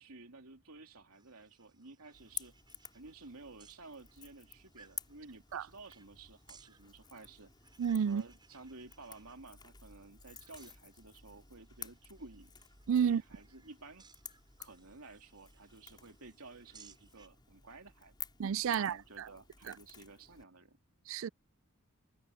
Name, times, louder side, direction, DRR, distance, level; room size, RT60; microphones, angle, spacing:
voice 1, 0.0-2.6 2.9-7.5 8.0-12.5 13.0-14.1 14.6-18.2 18.7-20.8, right 3 dB, 80° right, 3.1 m, -53 dB
sound 1, 1.1-17.3, right 5 dB, 20° right, 6.8 m, -65 dB
Crackle / Crack, 2.1-20.4, left 6 dB, 20° left, 5.4 m, -52 dB
voice 2, 7.8-8.2 12.9-13.2 18.4-19.3 21.1-21.3, right 7 dB, 65° right, 0.3 m, -31 dB
head